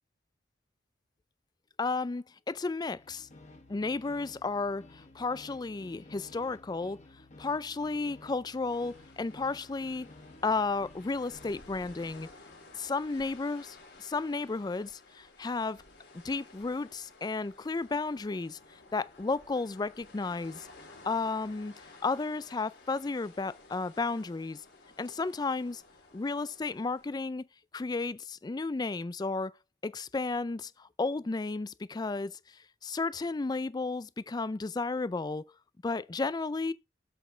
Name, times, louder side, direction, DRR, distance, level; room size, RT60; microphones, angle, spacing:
voice 1, 1.8-3.3 3.7-7.0 7.4-10.1 10.4-12.3 12.7-15.8 16.1-18.6 18.9-20.7 21.0-21.7 22.0-24.6 25.0-25.8 26.1-27.5 27.7-29.5 29.8-32.4 32.8-35.5 35.8-36.7, left 3 dB, 25° left, 0.4 m, -33 dB
sound 1, 2.8-12.4, left 2 dB, 40° left, 1.4 m, -54 dB
sound 2, 8.7-27.1, left 3 dB, 70° left, 3.8 m, -55 dB
7.9 x 5.9 x 4.5 m
head